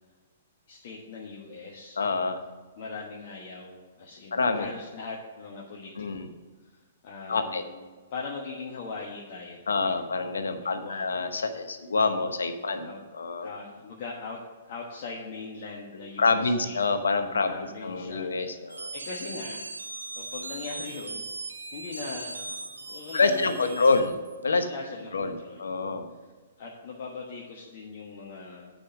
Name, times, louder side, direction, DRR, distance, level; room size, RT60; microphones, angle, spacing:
voice 1, 0.7-2.0 2.8-6.3 6.7-7.8 8.1-10.1 10.5-11.3 12.6-13.0 13.4-14.4 14.7-16.8 17.2-19.6 20.2-24.0 24.6-25.9 26.6-28.7, left 4 dB, 50° left, -2 dB, 1.3 m, -40 dB
voice 2, 2.0-2.4 4.3-4.7 6.0-6.3 7.3-7.6 9.7-13.5 16.2-17.5 17.8-18.9 23.1-24.1 24.4-24.7 25.1-26.1, left 4 dB, 75° left, 8 dB, 1.0 m, -26 dB
sound 1, 18.7-24.4, right 3 dB, 85° right, 0.8 m, -39 dB
9.1 x 5.3 x 6.4 m, 1.4 s
figure-of-eight pair, 120°, 0 cm